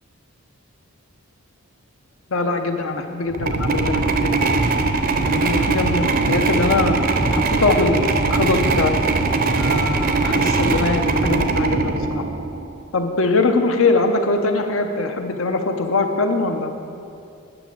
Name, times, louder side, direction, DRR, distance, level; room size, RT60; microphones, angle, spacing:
voice 1, 2.3-4.5 5.3-7.0 7.3-8.9 9.5-12.2 12.9-16.7, left 3 dB, 70° left, 5 dB, 0.8 m, -22 dB
sound 1, 3.3-12.7, right 3 dB, 45° right, 0.6 m, -20 dB
9.7 x 6.0 x 7.3 m, 2.5 s
head